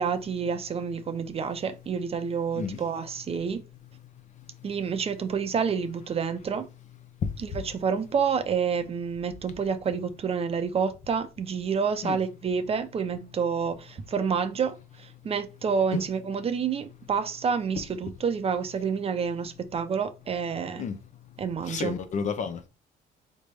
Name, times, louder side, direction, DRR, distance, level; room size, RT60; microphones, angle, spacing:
voice 1, 0.0-3.6 4.6-6.7 7.7-20.8 21.4-22.0, right 6 dB, 35° right, 0.6 m, -28 dB
voice 2, 21.7-22.7, left 6 dB, 45° left, 0.7 m, -31 dB
4.0 x 3.2 x 3.4 m
cardioid pair, 110°, 17 cm